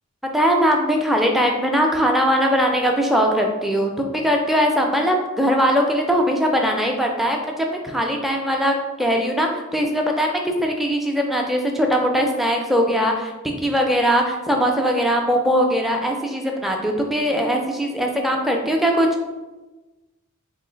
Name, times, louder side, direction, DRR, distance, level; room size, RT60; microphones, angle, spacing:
voice 1, 0.3-13.3 13.6-19.1, equal, ahead, 1 dB, 0.4 m, -20 dB
3.1 x 2.4 x 3.8 m, 1.1 s
head